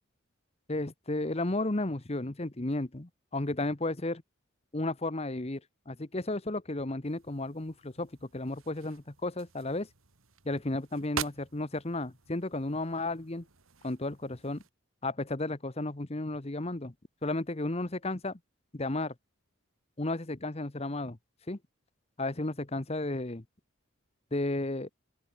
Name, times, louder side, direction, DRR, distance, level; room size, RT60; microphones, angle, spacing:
voice 1, 0.7-4.2 4.7-5.6 5.9-9.9 10.4-13.4 13.8-14.6 15.0-16.9 17.2-18.4 18.7-19.1 20.0-21.2 21.5-21.6 22.2-23.4 24.3-24.9, left 2 dB, 30° left, 1.1 m, -33 dB
sound 1, 7.0-14.7, right 7 dB, 85° right, 2.7 m, -45 dB
open air
head